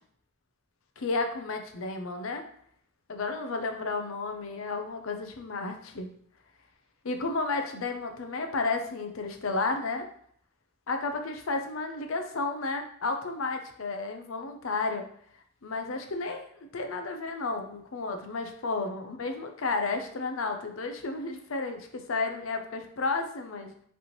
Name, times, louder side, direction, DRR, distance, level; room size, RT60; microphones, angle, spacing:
voice 1, 1.0-2.4 3.1-6.1 7.0-10.1 10.9-15.1 15.6-23.7, left 3 dB, 80° left, 5 dB, 0.7 m, -32 dB
5.0 x 3.4 x 3.0 m, 0.62 s
head